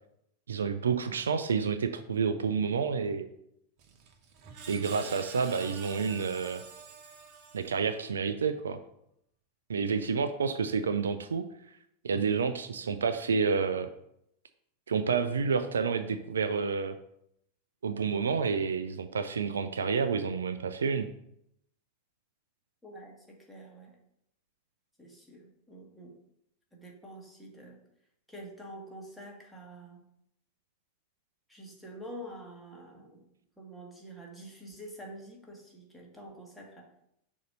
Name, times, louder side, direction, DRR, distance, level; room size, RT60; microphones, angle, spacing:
voice 1, 0.5-3.2 4.7-6.6 7.5-8.8 9.7-11.5 12.0-13.9 14.9-16.9 17.8-21.1, right 5 dB, 70° right, 10 dB, 0.3 m, -29 dB
Screech, 3.8-8.1, right 5 dB, 40° right, 0.8 m, -48 dB
voice 2, 22.8-24.0 25.0-26.2 26.7-27.8 28.3-30.0 31.5-33.3 33.6-36.9, right 1 dB, 5° left, -2 dB, 1.5 m, -47 dB
6.4 x 2.8 x 5.2 m, 0.77 s
figure-of-eight pair, 90°, 0 cm